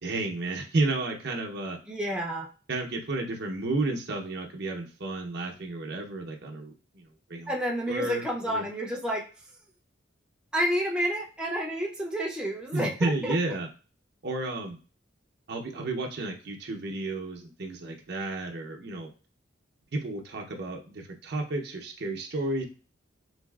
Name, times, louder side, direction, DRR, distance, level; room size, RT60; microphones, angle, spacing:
voice 1, 0.0-1.8 2.7-7.5 7.9-8.6 12.7-13.7 14.2-14.8 15.5-19.1 19.9-22.7, right 2 dB, 60° right, 1 dB, 0.7 m, -32 dB
voice 2, 1.9-2.5 7.5-9.2 10.5-13.3, equal, 5° right, -2 dB, 0.5 m, -30 dB
4.0 x 2.4 x 2.3 m, 0.36 s
head